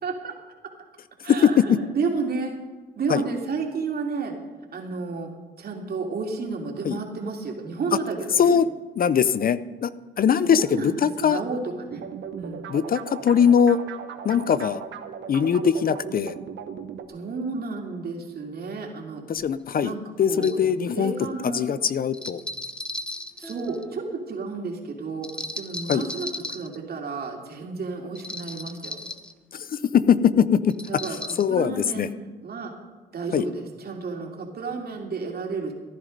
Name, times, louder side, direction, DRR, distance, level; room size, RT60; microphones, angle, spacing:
voice 1, 0.0-0.3 1.2-2.6 3.0-4.3 4.7-5.3 5.6-8.5 10.4-12.0 12.4-12.6 17.1-19.2 19.8-20.6 20.9-21.7 23.4-25.3 25.6-29.0 30.9-32.7 33.1-35.7, right 4 dB, 50° right, 1 dB, 2.9 m, -31 dB
voice 2, 1.4-1.8 3.1-3.2 6.8-7.0 8.4-8.7 9.0-9.9 10.2-11.4 12.7-13.8 14.2-14.8 15.3-16.3 19.3-19.9 20.2-21.1 21.5-22.4 25.9-26.0 29.5-30.7 31.4-32.1 33.3-33.5, left 7 dB, 45° left, 15 dB, 0.6 m, -21 dB
sound 1, 11.9-17.1, right 7 dB, 70° right, 1.1 m, -38 dB
sound 2, 19.4-19.5 20.3-20.6 22.1-24.0 25.2-26.8 28.1-29.3 30.7-31.4, left 1 dB, 5° left, 0.8 m, -36 dB
14.5 x 11.0 x 5.3 m, 1.3 s
cardioid pair, 90°, 20 cm